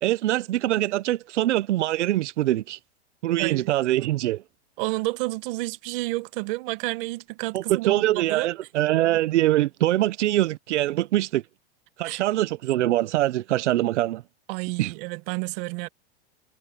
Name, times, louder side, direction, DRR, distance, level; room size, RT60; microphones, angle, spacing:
voice 1, 0.0-2.8 3.2-4.4 7.5-11.4 12.0-14.2 14.8-14.9, right 15 dB, 90° right, 0.7 m, -23 dB
voice 2, 3.4-3.7 4.8-8.5 12.0-12.2 14.5-15.9, right 22 dB, 50° right, 1.6 m, -30 dB
supercardioid pair, 145°, 34 cm